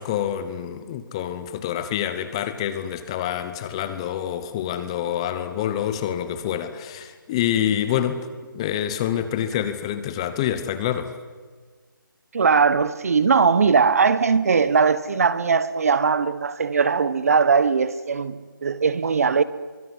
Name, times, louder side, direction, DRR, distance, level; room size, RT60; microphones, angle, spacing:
voice 1, 0.0-8.3 8.5-11.1, left 10 dB, 15° left, 1.0 m, -27 dB
voice 2, 12.3-19.4, right 5 dB, 45° right, 1.3 m, -20 dB
23.5 x 23.5 x 9.7 m
figure-of-eight pair, 165°, 11 cm